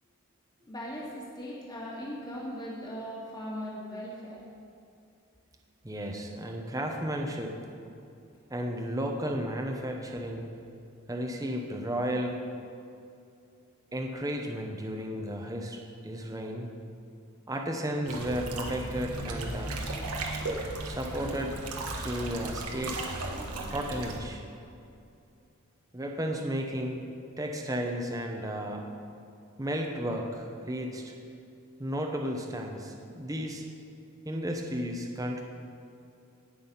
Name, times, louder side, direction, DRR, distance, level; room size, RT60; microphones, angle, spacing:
voice 1, 0.7-4.4, equal, 20° left, -4 dB, 2.1 m, -39 dB
voice 2, 5.8-7.6 8.5-10.5 11.1-12.4 13.9-16.7 17.5-19.8 20.8-21.6 22.0-23.0 23.7-24.4 25.9-27.0 27.4-28.9 29.6-31.1 31.8-33.6 34.2-35.4, equal, 15° right, 2 dB, 0.9 m, -33 dB
sound 1, 18.1-24.2, right 2 dB, 85° right, 1.5 m, -36 dB
18.0 x 6.3 x 5.6 m, 2.6 s
head